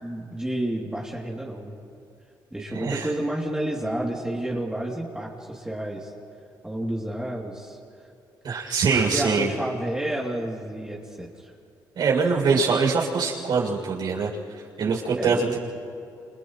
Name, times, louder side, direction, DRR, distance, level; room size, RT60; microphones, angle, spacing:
voice 1, 0.0-1.8 2.5-6.1 6.6-7.8 9.1-11.5 15.1-15.6, right 1 dB, 10° right, -4 dB, 3.1 m, -30 dB
voice 2, 2.7-3.1 8.4-9.5 12.0-14.3 14.8-15.6, right 5 dB, 65° right, -3 dB, 7.1 m, -23 dB
30.0 x 29.5 x 3.2 m, 2.5 s
cardioid pair, 80°, 8 cm